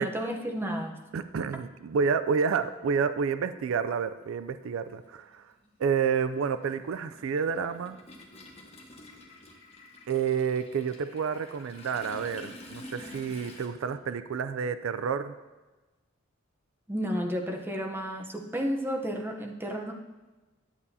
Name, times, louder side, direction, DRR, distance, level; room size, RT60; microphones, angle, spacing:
voice 1, 0.0-1.0 16.9-19.9, equal, 10° right, 1 dB, 0.8 m, -32 dB
voice 2, 1.1-5.4 5.8-8.0 10.1-15.3, right 6 dB, 85° right, 12 dB, 0.4 m, -29 dB
Toilet flush, 3.2-3.3 4.5-4.7 5.0-13.7, left 1 dB, 30° left, 1.1 m, -49 dB
11.0 x 8.4 x 2.7 m, 1.2 s
head